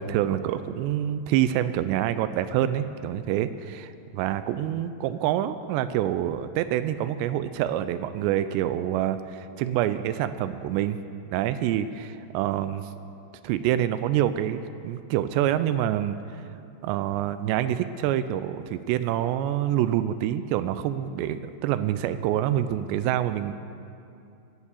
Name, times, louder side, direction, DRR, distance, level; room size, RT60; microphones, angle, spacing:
voice 1, 0.0-11.0 11.3-12.9 13.4-16.4 16.8-23.5, right 11 dB, 85° right, 12 dB, 2.8 m, -26 dB
18.0 x 7.2 x 8.4 m, 2.7 s
omnidirectional pair, 5.0 m